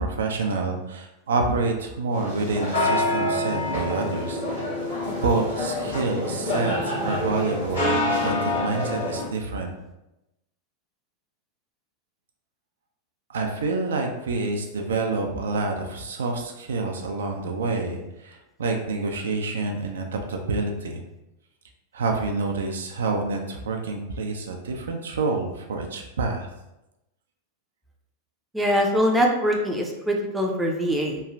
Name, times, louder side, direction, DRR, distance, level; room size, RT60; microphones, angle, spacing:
voice 1, 0.0-4.4 5.2-9.7 13.3-21.0 21.9-26.5, right 3 dB, 65° right, 3 dB, 0.3 m, -27 dB
sound 1, 2.1-9.2, left 1 dB, 80° left, 1.2 m, -26 dB
voice 2, 28.5-31.2, equal, 5° right, -1 dB, 0.5 m, -23 dB
3.0 x 2.3 x 2.4 m, 0.92 s
figure-of-eight pair, 90°, 0 cm